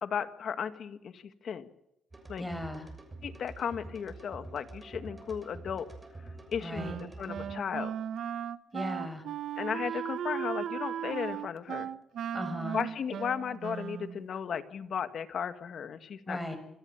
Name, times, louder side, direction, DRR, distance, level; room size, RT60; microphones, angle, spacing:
voice 1, 0.0-1.7 2.3-2.5 3.2-5.9 6.5-7.9 9.6-11.9 12.7-16.5, left 7 dB, 65° left, 10 dB, 1.8 m, -35 dB
sound 1, 2.1-7.5, right 2 dB, 20° right, 6.9 m, -46 dB
voice 2, 2.4-2.8 6.6-7.0 8.7-9.2 12.3-12.8 16.3-16.6, left 1 dB, 5° left, 7 dB, 6.3 m, -36 dB
Wind instrument woodwind instrument, 6.7-14.2, right 9 dB, 75° right, 0.9 m, -37 dB
27.0 x 18.0 x 7.2 m, 0.85 s
cardioid pair, 90°, 0 cm